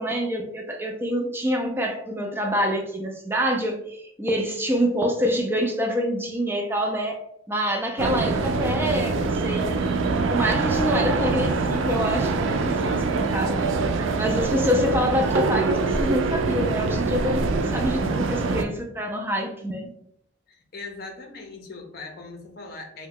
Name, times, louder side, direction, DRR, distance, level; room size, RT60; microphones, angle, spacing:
voice 1, 0.0-7.2 7.5-9.7 10.3-13.6 14.2-19.9, equal, 10° right, 1 dB, 0.4 m, -26 dB
sound 1, 8.0-18.6, right 3 dB, 90° right, 0.4 m, -24 dB
voice 2, 20.5-23.1, left 3 dB, 55° left, 3 dB, 0.6 m, -40 dB
2.8 x 2.1 x 3.7 m, 0.72 s
head